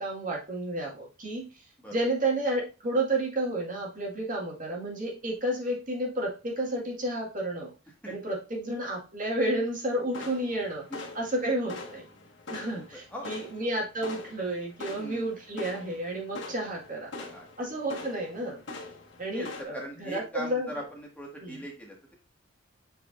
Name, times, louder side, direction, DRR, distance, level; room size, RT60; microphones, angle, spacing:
voice 1, 0.0-1.4 1.9-7.7 8.1-10.9 11.1-12.0 12.5-17.1 17.6-18.6 19.2-20.7 21.4-21.6, right 1 dB, 45° right, -2 dB, 2.0 m, -31 dB
sound 1, 10.1-19.6, left 2 dB, 65° left, 1.7 m, -43 dB
voice 2, 12.8-13.3 14.9-15.3 17.2-17.4 19.3-22.1, equal, 10° left, -2 dB, 1.9 m, -41 dB
8.0 x 4.7 x 2.6 m, 0.32 s
head